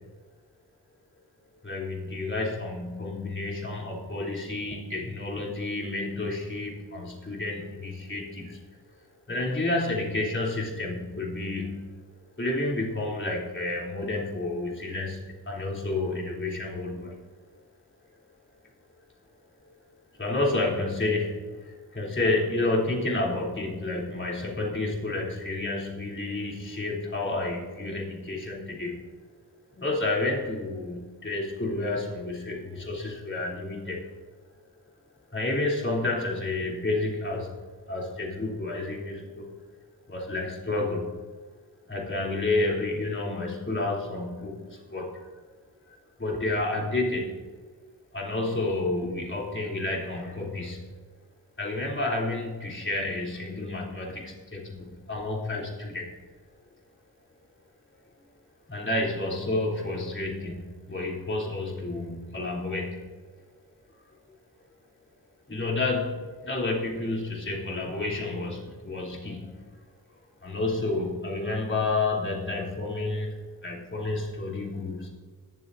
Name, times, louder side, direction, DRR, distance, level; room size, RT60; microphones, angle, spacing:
voice 1, 1.6-8.6 9.3-11.8 12.4-17.2 20.2-29.0 29.7-34.0 35.3-37.5 37.9-39.5 40.1-41.1 41.9-45.1 45.9-47.3 48.1-50.9 51.6-56.1 58.7-63.0 65.5-69.5 70.4-73.4 73.6-75.1, left 2 dB, 30° left, -3 dB, 3.4 m, -30 dB
20.5 x 7.4 x 2.7 m, 1.4 s
cardioid pair, 55°, 39 cm